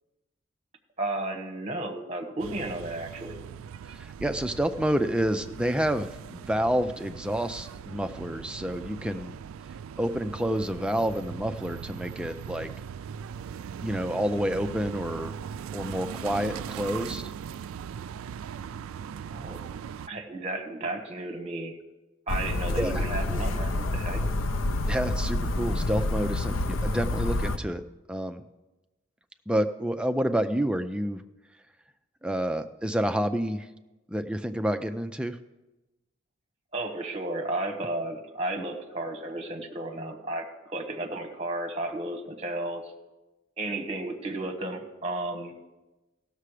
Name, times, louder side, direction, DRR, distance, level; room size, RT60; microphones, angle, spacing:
voice 1, 1.0-3.3 19.3-19.7 20.1-21.7 22.3-24.2 36.7-42.9 43.6-45.6, right 2 dB, 30° right, 5 dB, 1.1 m, -33 dB
sound 1, 2.4-20.1, right 7 dB, 90° right, 0.3 m, -40 dB
voice 2, 3.9-9.4 10.0-12.7 13.8-15.3 15.7-17.3 22.8-23.0 24.8-27.8 28.1-28.4 29.5-31.2 32.2-33.7 34.1-35.4, equal, 5° right, 7 dB, 0.4 m, -29 dB
sound 2, 22.3-27.6, left 2 dB, 85° left, 0.6 m, -28 dB
16.0 x 6.7 x 4.9 m, 1.1 s
head